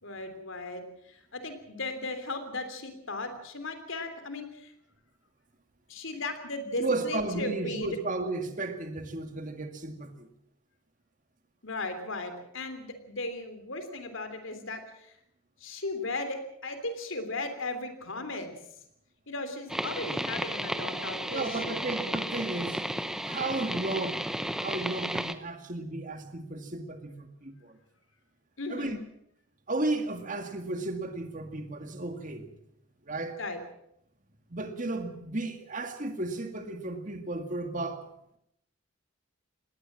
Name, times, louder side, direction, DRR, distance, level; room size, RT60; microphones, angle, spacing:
voice 1, 0.0-4.7 5.9-8.0 11.6-15.1 15.6-18.5 19.3-21.9 28.6-29.0 33.4-33.6, left 2 dB, 65° left, 9 dB, 3.3 m, -36 dB
voice 2, 6.8-10.3 21.3-22.8 23.2-24.3 24.5-27.8 28.7-29.0 29.7-32.6 33.1-33.4 34.5-38.1, right 2 dB, 35° right, 7 dB, 2.1 m, -34 dB
sound 1, 19.7-25.3, equal, ahead, 0.8 m, -33 dB
20.0 x 17.5 x 7.5 m, 0.77 s
head